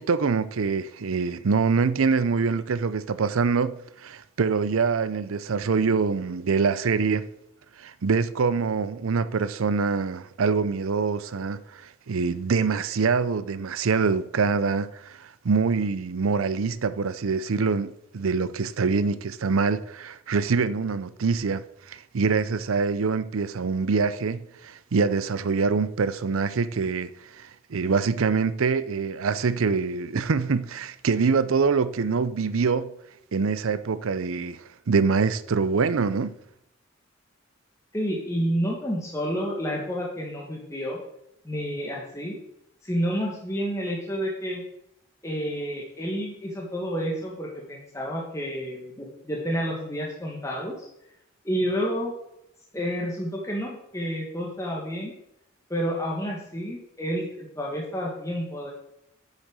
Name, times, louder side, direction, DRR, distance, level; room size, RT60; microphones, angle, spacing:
voice 1, 0.0-7.3 7.8-11.8 12.1-32.9 33.3-36.3, right 5 dB, 80° right, 0.5 m, -25 dB
voice 2, 37.9-41.0 41.4-42.4 42.8-44.6 45.2-50.9 51.4-52.1 52.7-55.1 55.7-58.7, equal, 15° left, 1.4 m, -30 dB
8.3 x 6.5 x 6.2 m
head